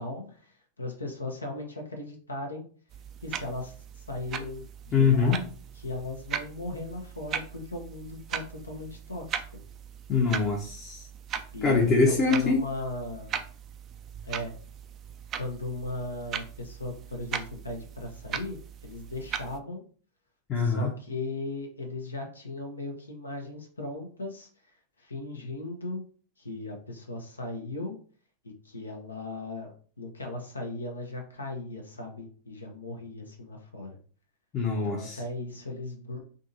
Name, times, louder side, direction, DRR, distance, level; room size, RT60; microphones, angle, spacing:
voice 1, 0.0-2.6 3.2-5.4 5.7-9.6 11.5-13.3 14.2-14.6 15.4-19.8 20.6-24.5 25.0-26.0 26.4-27.9 28.4-29.7 30.0-34.0 34.8-36.2, left 2 dB, 80° left, 2 dB, 0.7 m, -37 dB
sound 1, 2.9-19.6, right 8 dB, 30° right, 0.3 m, -39 dB
voice 2, 4.9-5.4 10.1-11.1 11.6-12.6 20.5-20.9 34.5-35.2, left 4 dB, 25° left, -1 dB, 0.7 m, -24 dB
3.6 x 2.7 x 2.6 m, 0.43 s
figure-of-eight pair, 90°, 0 cm